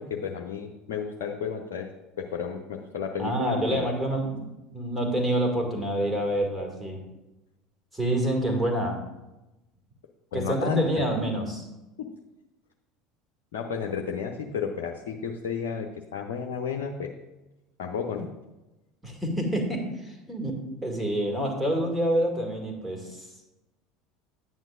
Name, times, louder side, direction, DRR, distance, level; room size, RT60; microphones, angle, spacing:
voice 1, 0.0-1.9 2.2-3.9 10.3-10.8 12.0-12.1 13.5-15.9 16.1-17.1 17.8-18.3, left 7 dB, 65° left, 2 dB, 0.7 m, -32 dB
voice 2, 3.2-7.0 7.9-9.0 10.3-11.7 19.0-23.3, right 1 dB, 5° right, 1 dB, 2.2 m, -27 dB
11.0 x 9.0 x 2.5 m, 1.0 s
figure-of-eight pair, 70°, 0 cm